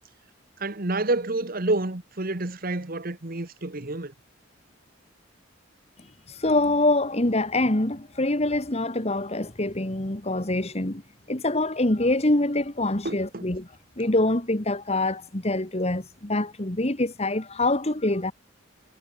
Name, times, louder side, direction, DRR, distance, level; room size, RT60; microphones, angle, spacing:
voice 1, 0.6-4.1 13.0-13.4, right 2 dB, 45° right, 1.5 m, -28 dB
voice 2, 6.4-11.0 11.3-13.7 14.0-18.3, left 2 dB, 30° left, 1.8 m, -25 dB
head